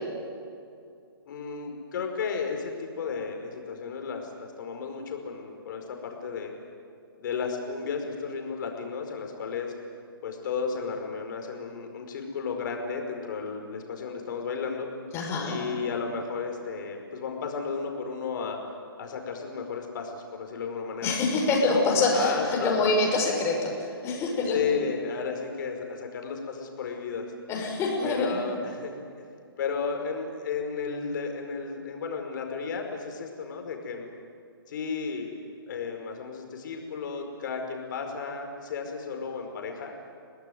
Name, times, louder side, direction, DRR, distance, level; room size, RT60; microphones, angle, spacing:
voice 1, 1.3-6.6 7.2-9.7 10.2-14.9 15.4-18.6 19.0-21.2 21.7-21.8 22.1-23.0 24.5-27.3 28.0-28.9 29.2-29.3 29.6-34.1 34.7-35.3 35.7-39.9, left 5 dB, 50° left, 3 dB, 5.0 m, -33 dB
voice 2, 15.1-15.6 21.0-23.7 24.0-24.6 27.5-28.4, left 3 dB, 20° left, 0 dB, 5.8 m, -25 dB
28.0 x 19.0 x 9.4 m, 2.4 s
hypercardioid pair, 145°, 13 cm